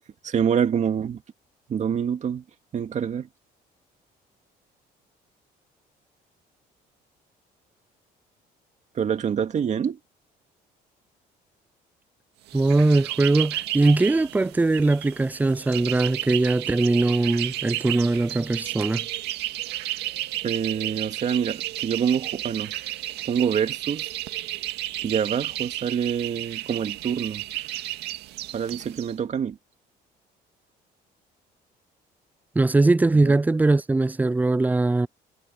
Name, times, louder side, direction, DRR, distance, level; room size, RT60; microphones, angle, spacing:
voice 1, 0.2-1.2 1.7-2.4 2.7-3.3 9.0-10.0 20.4-22.7 23.3-24.1 25.0-27.4 28.5-29.6 33.2-33.4, right 8 dB, 45° right, 2.3 m, -26 dB
voice 2, 12.5-19.0 32.6-35.1, right 2 dB, 10° right, 0.5 m, -21 dB
sound 1, 12.5-29.1, right 15 dB, 85° right, 2.1 m, -33 dB
cardioid pair, 110°, 17 cm